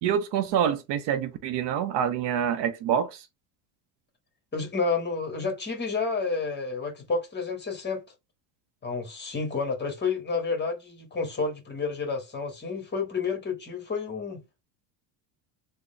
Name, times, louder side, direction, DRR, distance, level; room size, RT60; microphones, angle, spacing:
voice 1, 0.0-3.3, right 9 dB, 55° right, 0.7 m, -26 dB
voice 2, 4.5-8.0 8.8-14.4, left 4 dB, 20° left, 1.2 m, -30 dB
3.6 x 2.2 x 3.2 m
supercardioid pair, 115°, 50 cm